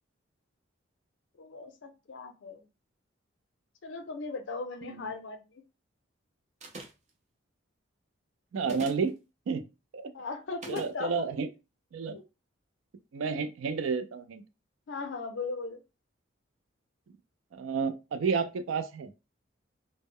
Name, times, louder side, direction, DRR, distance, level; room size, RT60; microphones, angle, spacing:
voice 1, 1.4-2.7 3.8-5.6 10.1-11.3 12.1-12.2 14.9-15.8, left 3 dB, 65° left, 0.5 m, -38 dB
sound 1, 6.6-7.1 8.6-9.1 10.6-10.9, right 3 dB, 35° right, 0.5 m, -42 dB
voice 2, 8.5-9.1 9.5-9.6 9.9-10.1 10.7-11.5 11.9-12.2 13.1-14.4 17.5-19.1, right 5 dB, 85° right, 0.4 m, -31 dB
2.0 x 2.0 x 3.5 m
head